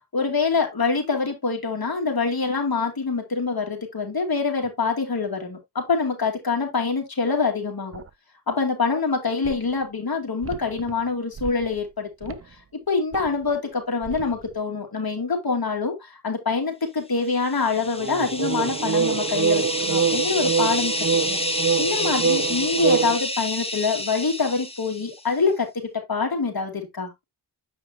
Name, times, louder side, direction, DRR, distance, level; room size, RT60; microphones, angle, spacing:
voice 1, 0.1-8.0 8.5-12.4 12.9-20.9 21.3-21.4 21.8-25.7 26.1-27.1, left 4 dB, 50° left, 2.4 m, -25 dB
sound 1, 7.9-8.1 9.4-9.5 10.4-10.9 11.4-11.8 12.2-12.4 13.1-13.3 14.0-14.3 18.0-23.2, right 6 dB, 35° right, 0.5 m, -25 dB
sound 2, 17.4-25.2, left 2 dB, 15° left, 1.4 m, -29 dB
7.7 x 5.0 x 2.7 m
cardioid pair, 45°, 45 cm